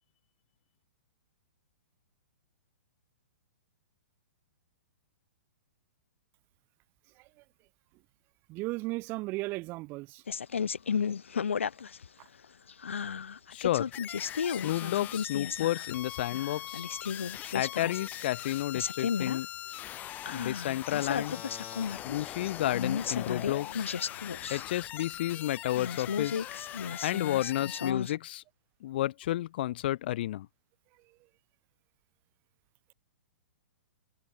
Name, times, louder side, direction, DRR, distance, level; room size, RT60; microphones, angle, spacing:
voice 1, 8.5-10.2 24.4-24.5 26.8-27.0, right 22 dB, 30° right, 0.7 m, -36 dB
Guacimara Martínez, 10.3-12.1 12.4-16.0 16.3-18.5 18.7-19.4 19.7-19.8 20.3-25.3 25.8-28.2, left 6 dB, 70° left, 1.1 m, -34 dB
voice 2, 13.5-13.9 14.5-16.8 17.5-19.5 20.3-21.4 22.0-23.9 24.5-26.5 27.0-28.4 28.8-30.5, left 14 dB, 50° left, 1.0 m, -31 dB
sound 1, 13.9-27.9, left 13 dB, 25° left, 0.9 m, -42 dB
figure-of-eight pair, 110°, 7 cm